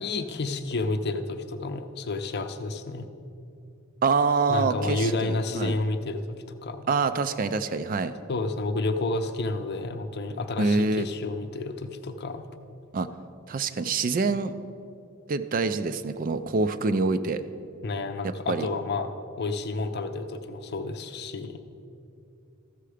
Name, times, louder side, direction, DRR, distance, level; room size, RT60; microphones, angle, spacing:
voice 1, 0.0-3.1 4.5-6.4 6.6-6.8 8.3-12.5 17.8-19.1 19.4-21.5, left 2 dB, 50° left, 8 dB, 0.6 m, -30 dB
voice 2, 4.0-5.7 6.9-8.1 10.6-11.1 12.9-13.1 13.5-14.6 15.3-17.4 18.2-18.7, right 4 dB, 40° right, 11 dB, 0.4 m, -26 dB
14.0 x 6.7 x 4.9 m, 2.6 s
head